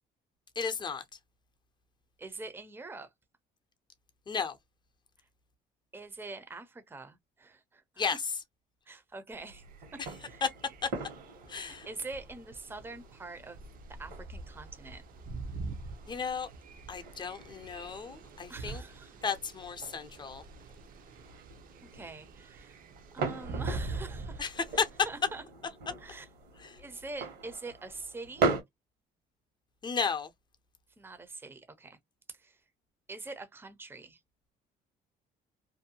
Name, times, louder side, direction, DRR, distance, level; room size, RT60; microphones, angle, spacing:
voice 1, 0.6-1.0 4.3-4.6 8.0-8.2 10.4-10.5 11.5-11.9 16.1-16.5 16.9-18.8 19.2-20.4 24.4-24.5 24.8-24.9 26.6-26.7 29.8-30.3, left 5 dB, 25° left, 0.6 m, -33 dB
voice 2, 2.2-3.1 5.9-8.2 8.9-9.6 9.9-10.4 11.5-13.6 14.0-15.0 18.5-19.2 21.8-22.8 23.1-25.4 26.0-26.3 26.8-28.6 31.0-32.0 32.3-32.6 33.1-34.2, right 3 dB, 15° right, 0.6 m, -45 dB
sound 1, 9.3-28.6, right 4 dB, 75° right, 1.3 m, -41 dB
sound 2, 9.5-25.2, right 3 dB, 55° right, 0.6 m, -45 dB
2.6 x 2.2 x 2.7 m
cardioid pair, 110°, 17 cm